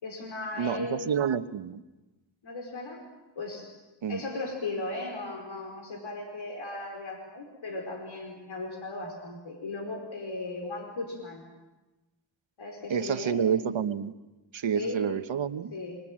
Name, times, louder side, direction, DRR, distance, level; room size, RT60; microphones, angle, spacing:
voice 1, 0.0-1.0 2.4-3.0 3.3-3.7 4.1-11.4 12.6-13.4 14.7-15.0 15.7-16.0, left 2 dB, 85° left, 1 dB, 4.9 m, -36 dB
voice 2, 0.6-1.8 4.0-4.2 12.9-14.1 14.5-15.7, right 8 dB, 90° right, 10 dB, 1.2 m, -29 dB
28.5 x 25.5 x 7.5 m, 1.1 s
cardioid pair, 50°, 45 cm